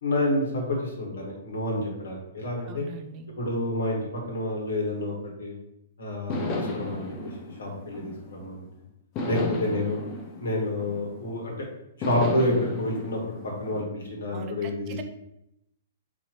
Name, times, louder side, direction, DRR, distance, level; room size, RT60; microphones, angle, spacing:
voice 1, 0.0-2.8 3.4-4.0 4.3-5.1 5.4-5.5 6.0-7.1 7.6-8.7 9.2-10.0 10.4-11.6 12.1-15.0, left 1 dB, 70° left, -1 dB, 1.2 m, -28 dB
voice 2, 2.7-3.3 9.3-9.8 14.3-15.0, right 5 dB, 35° right, 7 dB, 0.4 m, -41 dB
sound 1, 6.3-8.6 9.2-11.4 12.0-13.8, left 2 dB, 30° left, 0.6 m, -34 dB
2.8 x 2.6 x 4.3 m, 0.84 s
figure-of-eight pair, 115°, 0 cm